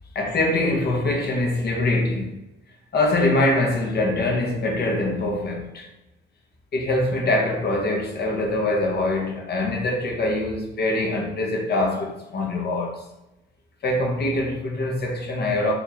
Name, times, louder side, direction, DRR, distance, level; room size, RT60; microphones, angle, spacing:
voice 1, 0.1-2.4 2.9-5.9 6.7-13.0 13.8-15.7, left 2 dB, 55° left, 1.2 m, -23 dB
4.5 x 2.9 x 3.0 m
cardioid pair, 90°, 20 cm